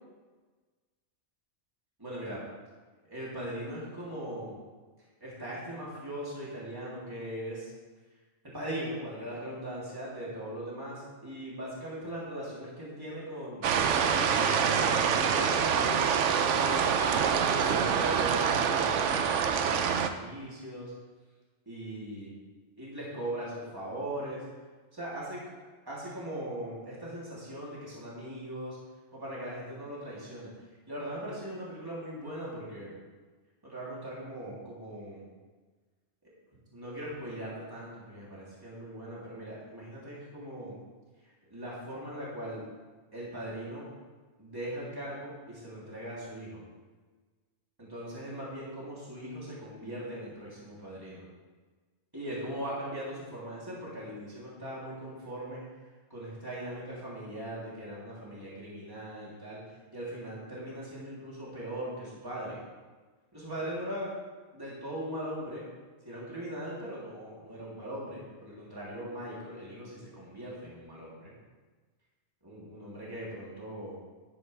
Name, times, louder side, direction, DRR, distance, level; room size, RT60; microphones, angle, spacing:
voice 1, 2.0-2.4 3.1-4.5 5.2-7.7 8.5-13.6 14.0-17.1 17.4-20.9 21.7-22.3 22.8-24.4 24.9-28.8 29.1-30.5 30.9-33.0 33.6-35.2 36.2-36.3 36.7-40.8 41.5-42.6 43.1-43.9 44.4-46.6 47.8-51.3 52.1-55.6 56.1-59.6 59.9-62.6 63.3-64.1 64.5-65.6 66.0-71.3 72.4-74.0, right 1 dB, 20° right, -7 dB, 3.2 m, -39 dB
sound 1, 13.6-20.1, right 7 dB, 80° right, 1.0 m, -26 dB
11.5 x 10.0 x 3.4 m, 1.4 s
omnidirectional pair, 1.2 m